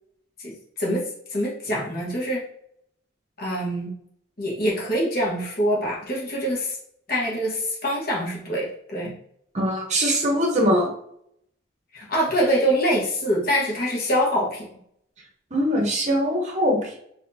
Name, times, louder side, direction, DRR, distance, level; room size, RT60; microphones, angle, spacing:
voice 1, 0.4-1.0 1.3-2.4 3.4-3.9 4.4-6.8 7.1-9.1 11.9-14.7, equal, 45° left, -4 dB, 1.2 m, -24 dB
voice 2, 9.5-10.9 15.5-17.0, equal, 35° right, 0 dB, 0.8 m, -22 dB
4.2 x 2.7 x 2.7 m, 0.69 s
head